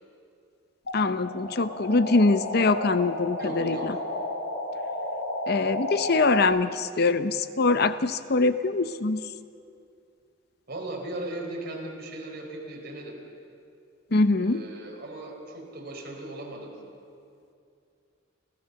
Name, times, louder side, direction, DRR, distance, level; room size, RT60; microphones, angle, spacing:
sound 1, 0.9-6.4, left 1 dB, 80° left, 5.2 m, -32 dB
voice 1, 0.9-3.9 5.5-9.2 14.1-14.6, left 3 dB, 55° left, 12 dB, 0.7 m, -23 dB
voice 2, 3.4-4.0 10.7-13.2 14.3-16.8, right 2 dB, 55° right, 0 dB, 4.6 m, -37 dB
29.0 x 15.0 x 7.0 m, 2.5 s
head